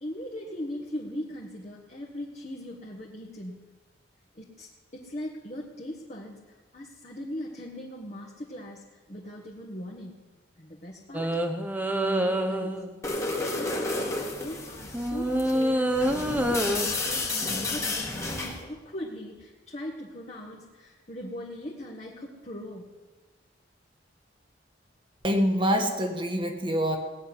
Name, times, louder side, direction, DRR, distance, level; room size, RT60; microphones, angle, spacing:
voice 1, 0.0-3.7 4.3-6.4 6.7-10.2 10.6-11.4 12.0-12.8 13.2-22.9, left 1 dB, 40° left, -2 dB, 1.5 m, -39 dB
sound 1, 11.1-13.0 14.9-16.9 17.9-18.1, right 1 dB, 10° right, 0.9 m, -27 dB
sound 2, 13.0-18.6, left 2 dB, 15° left, 1.7 m, -32 dB
voice 2, 25.2-27.0, equal, 25° right, 4 dB, 1.5 m, -25 dB
18.0 x 6.6 x 9.8 m, 1.3 s
head